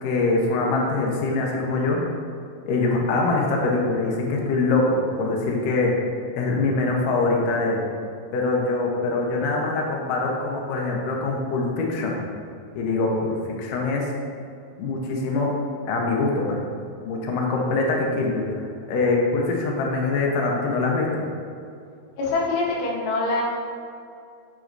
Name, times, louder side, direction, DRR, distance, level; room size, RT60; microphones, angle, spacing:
voice 1, 0.0-2.0 2.7-5.9 6.3-7.8 8.3-12.2 12.8-14.1 14.8-15.5 15.8-16.6 17.1-21.2, left 3 dB, 70° left, -1 dB, 2.1 m, -23 dB
voice 2, 22.2-23.4, left 3 dB, 90° left, -4 dB, 3.3 m, -24 dB
7.6 x 6.2 x 2.6 m, 2.4 s
omnidirectional pair, 4.7 m